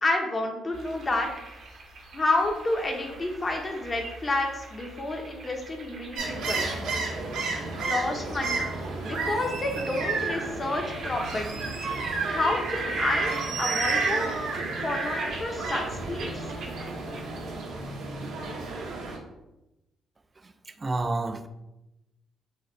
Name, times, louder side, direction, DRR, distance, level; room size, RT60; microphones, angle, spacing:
voice 1, 0.0-1.3 2.1-6.7 7.7-8.7 9.0-11.7 12.2-13.3 13.6-14.3 14.8-16.5, left 2 dB, 30° left, 2 dB, 1.0 m, -29 dB
sound 1, 0.7-17.5, right 3 dB, 70° right, 1.0 m, -37 dB
sound 2, 6.2-19.2, right 3 dB, 90° right, 1.1 m, -32 dB
voice 2, 20.4-21.5, right 2 dB, 25° right, 9 dB, 0.4 m, -30 dB
6.3 x 2.5 x 3.1 m, 0.94 s
cardioid pair, 90°, 0 cm